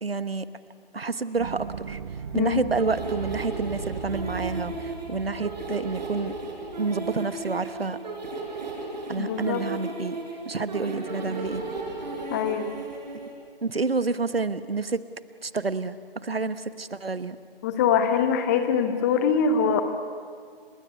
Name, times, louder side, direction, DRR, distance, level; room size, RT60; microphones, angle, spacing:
voice 1, 0.0-0.4 0.9-2.0 2.3-6.3 6.8-8.0 9.1-10.2 10.4-11.6 13.6-15.0 15.4-17.4, right 4 dB, 75° right, 14 dB, 1.3 m, -29 dB
sound 1, 1.4-7.9 8.2-8.3, right 7 dB, 25° right, 1.2 m, -39 dB
sound 2, 2.8-13.3, right 2 dB, 45° right, 5.0 m, -35 dB
voice 2, 9.2-9.6 12.3-12.7 17.6-19.8, left 6 dB, 15° left, 8 dB, 1.2 m, -23 dB
29.5 x 18.0 x 9.7 m, 2.1 s
figure-of-eight pair, 145°, 30 cm